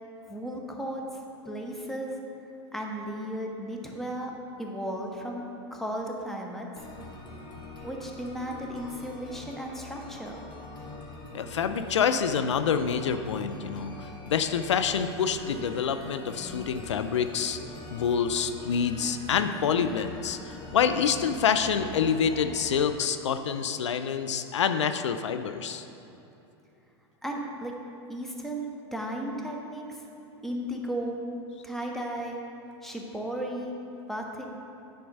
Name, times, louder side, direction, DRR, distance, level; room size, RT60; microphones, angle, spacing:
voice 1, 0.3-1.0 1.4-2.2 2.7-4.3 4.6-5.4 5.7-6.7 7.8-10.4 27.2-27.7 28.1-30.0 30.4-31.2 31.6-32.4 32.8-33.7 34.1-34.5, right 1 dB, ahead, 0 dB, 1.1 m, -35 dB
sound 1, 6.8-22.8, left 2 dB, 30° left, 1.3 m, -43 dB
voice 2, 11.3-17.6 17.9-25.8, left 7 dB, 90° left, 9 dB, 0.4 m, -27 dB
9.4 x 4.4 x 5.3 m, 2.9 s
hypercardioid pair, 100°, 15 cm